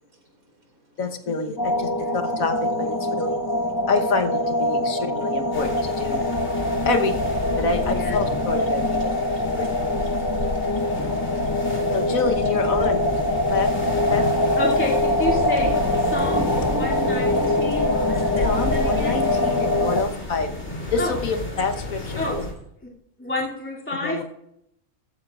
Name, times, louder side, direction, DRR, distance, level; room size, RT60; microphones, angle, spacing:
voice 1, 1.0-3.4 3.9-6.2 6.8-7.1 7.6-9.2 9.5-9.7 11.9-13.1 13.5-13.7 14.1-14.2 18.4-20.5 20.9-22.5 24.0-24.2, left 4 dB, 80° left, 5 dB, 1.6 m, -27 dB
sound 1, 1.6-20.0, left 1 dB, 35° left, 0.3 m, -23 dB
sound 2, 5.5-22.5, left 2 dB, 55° left, 3.7 m, -32 dB
voice 2, 7.8-8.2 14.5-15.7 16.1-16.5 16.8-19.2 21.0-21.1 22.2-22.5 23.2-24.2, left 2 dB, 10° left, -4 dB, 2.7 m, -29 dB
voice 3, 10.1-11.5 15.0-20.3, right 1 dB, 85° right, 0 dB, 4.2 m, -35 dB
14.5 x 14.5 x 2.5 m, 0.77 s
omnidirectional pair, 1.4 m